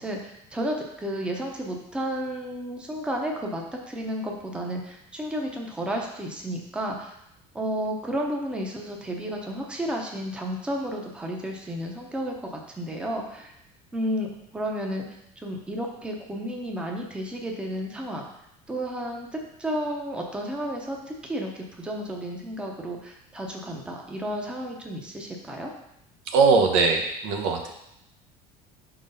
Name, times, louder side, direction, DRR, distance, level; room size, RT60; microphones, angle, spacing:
voice 1, 0.0-7.1 7.5-13.5 13.9-14.3 14.5-15.1 15.4-18.2 18.7-19.3 19.6-25.7, equal, 5° right, 0 dB, 0.6 m, -32 dB
voice 2, 26.3-27.7, right 4 dB, 85° right, 4 dB, 1.0 m, -21 dB
5.0 x 3.9 x 5.3 m, 0.80 s
cardioid pair, 165°, 16 cm